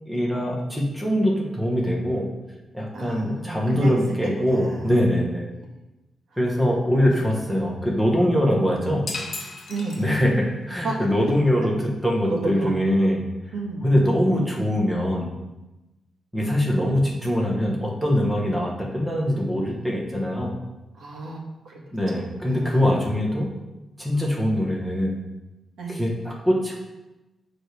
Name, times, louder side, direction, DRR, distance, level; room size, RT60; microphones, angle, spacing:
voice 1, 0.0-2.3 2.7-5.4 6.4-9.0 10.0-11.7 12.0-13.2 13.8-15.3 16.3-20.5 21.9-23.5 24.0-25.1 25.9-26.8, equal, 5° right, -2 dB, 1.2 m, -23 dB
voice 2, 2.9-4.9 5.6-5.8 6.3-6.4 7.0-7.7 8.4-9.2 9.7-10.0 10.8-11.0 12.3-12.7 13.5-13.9 20.9-23.2 25.8-26.0, right 3 dB, 85° right, -1 dB, 1.3 m, -33 dB
sound 1, 9.1-10.5, left 3 dB, 45° left, 0.9 m, -35 dB
7.3 x 3.4 x 4.6 m, 1.0 s
wide cardioid pair, 165°, 0 cm